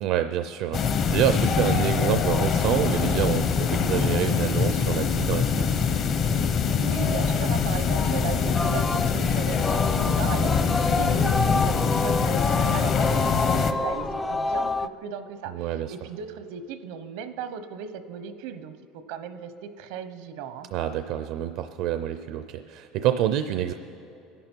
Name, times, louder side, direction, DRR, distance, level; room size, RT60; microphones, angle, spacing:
voice 1, 0.0-5.8 15.5-16.0 20.7-23.7, right 11 dB, 60° right, 9 dB, 0.5 m, -27 dB
sound 1, 0.7-13.7, left 6 dB, 40° left, 0.8 m, -24 dB
voice 2, 6.8-20.7, right 7 dB, 80° right, 11 dB, 0.9 m, -37 dB
Singing, 8.4-14.9, left 2 dB, 10° left, 0.3 m, -28 dB
25.0 x 11.0 x 4.5 m, 2.9 s
cardioid pair, 150°, 0 cm